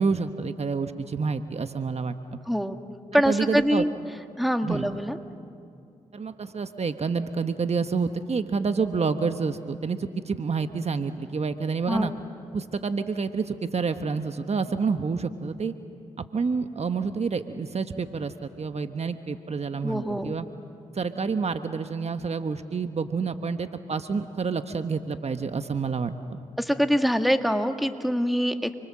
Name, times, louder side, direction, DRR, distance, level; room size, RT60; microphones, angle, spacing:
voice 1, 0.0-2.2 3.1-3.9 4.6-4.9 6.1-12.1 12.5-15.7 16.2-20.4 20.9-26.4, right 5 dB, 50° right, 9 dB, 1.3 m, -28 dB
voice 2, 2.5-2.8 3.1-3.9 4.4-5.2 11.9-12.2 19.8-20.3 26.6-28.7, equal, ahead, 6 dB, 2.0 m, -24 dB
30.0 x 24.5 x 7.6 m, 2.4 s
supercardioid pair, 40°, 14 cm